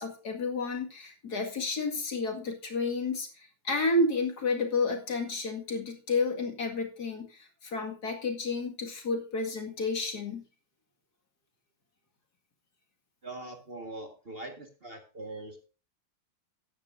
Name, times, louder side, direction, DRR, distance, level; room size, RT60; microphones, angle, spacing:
voice 1, 0.0-10.4, left 3 dB, 55° left, 3 dB, 2.6 m, -31 dB
voice 2, 13.2-15.7, right 2 dB, 30° right, 4 dB, 1.9 m, -42 dB
14.5 x 11.0 x 2.7 m, 0.34 s
omnidirectional pair, 2.1 m